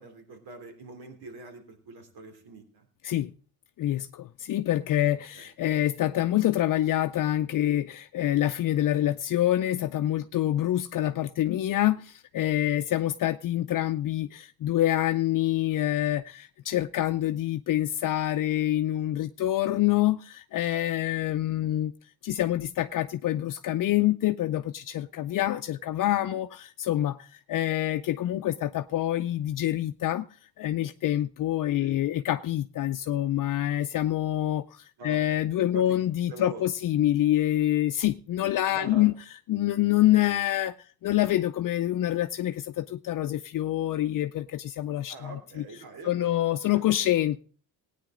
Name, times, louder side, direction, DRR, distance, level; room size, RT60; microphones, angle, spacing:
voice 1, 0.0-2.9 5.0-5.5 11.4-11.6 21.6-21.8 31.8-32.0 35.0-35.2 35.6-36.7 38.7-39.1 45.1-47.1, right 2 dB, 75° right, 3.4 m, -44 dB
voice 2, 3.8-21.9 22.2-30.3 30.6-39.1 39.5-45.3 46.0-47.4, left 13 dB, 55° left, 0.6 m, -26 dB
18.5 x 9.4 x 3.8 m
cardioid pair, 125°, 38 cm